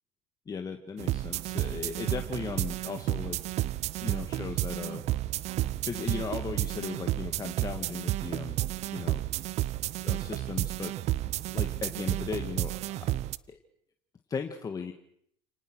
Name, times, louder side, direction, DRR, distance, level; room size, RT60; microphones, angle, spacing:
voice 1, 0.5-3.4 4.0-5.0 5.9-8.6 8.9-9.2 10.0-10.9 11.5-13.0 13.5-13.6 14.3-14.9, left 5 dB, 25° left, 5 dB, 2.0 m, -37 dB
sound 1, 1.0-13.4, right 15 dB, 55° right, 0.8 m, -31 dB
30.0 x 19.0 x 6.4 m, 0.70 s
supercardioid pair, 100°, 14 cm